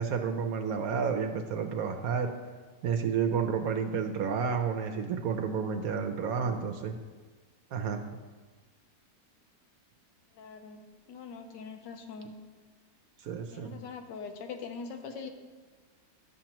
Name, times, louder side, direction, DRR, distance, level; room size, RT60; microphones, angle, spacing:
voice 1, 0.0-2.3 2.8-7.0 7.7-8.0 13.2-13.8, right 6 dB, 70° right, 5 dB, 0.9 m, -30 dB
voice 2, 10.3-12.4 13.5-15.3, left 5 dB, 90° left, 6 dB, 1.4 m, -42 dB
11.5 x 7.3 x 2.9 m, 1.4 s
omnidirectional pair, 1.9 m